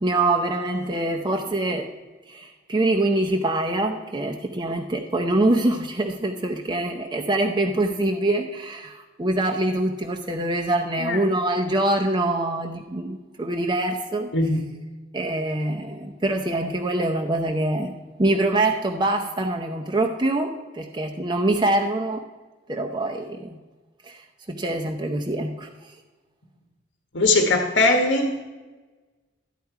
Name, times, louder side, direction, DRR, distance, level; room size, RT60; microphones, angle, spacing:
voice 1, 0.0-1.9 2.3-14.3 15.1-17.9 18.2-22.2 22.7-23.6 24.0-24.2 24.5-25.7, right 2 dB, 25° right, 2 dB, 0.7 m, -24 dB
voice 2, 14.3-14.6 27.1-28.3, left 2 dB, 75° left, 3 dB, 1.2 m, -20 dB
13.0 x 9.2 x 4.7 m, 1.3 s
head